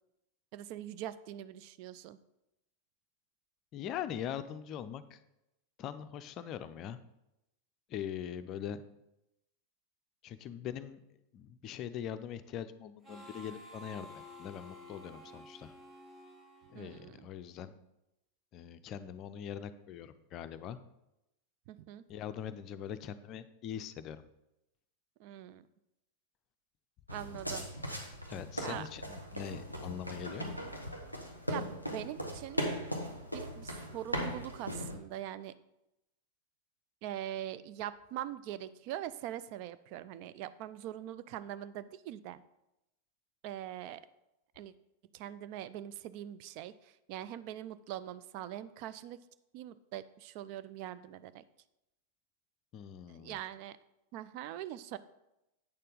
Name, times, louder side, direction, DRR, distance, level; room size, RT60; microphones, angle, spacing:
voice 1, 0.5-2.2 16.7-17.3 21.7-22.0 25.2-25.7 27.1-27.7 28.6-28.9 31.5-32.6 33.3-35.5 37.0-42.4 43.4-44.0 44.6-44.7 45.1-49.2 49.5-51.4 53.1-53.8 54.1-55.0, right 12 dB, 45° right, 14 dB, 0.3 m, -42 dB
voice 2, 3.7-5.2 5.8-7.0 7.9-8.8 10.2-11.0 11.3-15.7 16.7-17.7 18.5-20.8 22.1-24.2 28.3-30.5 52.7-53.4, left 9 dB, 35° left, 12 dB, 0.5 m, -42 dB
Harmonica, 13.0-17.5, left 1 dB, 20° right, 1.9 m, -52 dB
sound 1, 27.1-34.9, equal, 90° right, 1.1 m, -39 dB
8.6 x 6.6 x 3.8 m, 0.89 s
figure-of-eight pair, 90°, 0 cm